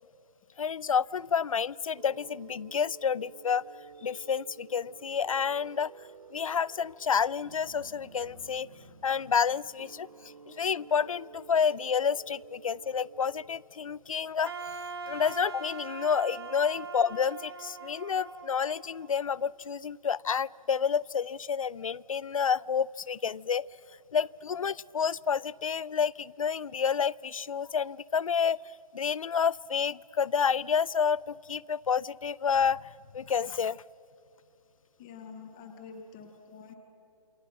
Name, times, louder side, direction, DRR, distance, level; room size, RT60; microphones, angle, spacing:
voice 1, 0.6-3.6 4.0-5.9 6.3-8.7 9.0-10.1 10.5-14.5 15.1-23.7 24.1-28.6 28.9-32.9 33.1-33.8, left 7 dB, 60° left, 24 dB, 0.5 m, -29 dB
sound 1, 1.9-13.5, right 5 dB, 80° right, 1.4 m, -52 dB
Wind instrument woodwind instrument, 14.4-19.5, right 5 dB, 40° right, 1.7 m, -42 dB
voice 2, 35.0-36.7, left 5 dB, 5° left, 4 dB, 0.5 m, -47 dB
28.0 x 25.0 x 7.4 m, 2.8 s
hypercardioid pair, 170°, 19 cm